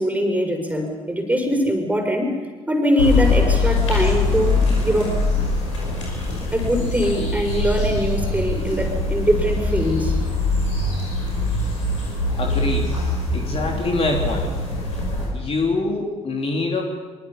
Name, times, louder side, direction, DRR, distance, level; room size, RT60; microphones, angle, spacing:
voice 1, 0.0-2.3 2.7-5.2 6.5-10.1, equal, 10° right, 3 dB, 6.3 m, -22 dB
sound 1, 3.0-15.2, left 2 dB, 80° left, 5.6 m, -23 dB
voice 2, 12.4-12.9 13.3-14.5 15.3-16.8, left 2 dB, 40° left, 0 dB, 3.5 m, -24 dB
24.5 x 24.0 x 5.7 m, 1.4 s
figure-of-eight pair, 45°, 16 cm